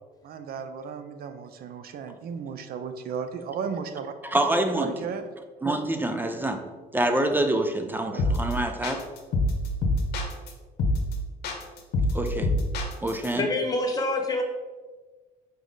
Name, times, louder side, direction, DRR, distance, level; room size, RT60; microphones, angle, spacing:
voice 1, 0.2-4.1 4.7-5.2 8.1-8.4, right 6 dB, 65° right, 9 dB, 0.7 m, -35 dB
voice 2, 4.3-4.9 5.6-6.6 6.9-9.0 12.1-12.5 13.0-13.5, right 1 dB, 10° right, 6 dB, 0.6 m, -26 dB
sound 1, 8.2-8.5 8.8-10.5 10.8-11.1 11.4-13.3, left 2 dB, 75° left, 1.1 m, -25 dB
voice 3, 13.4-14.4, left 2 dB, 20° left, 1 dB, 1.1 m, -26 dB
5.3 x 4.7 x 3.9 m, 1.3 s
cardioid pair, 110°, 17 cm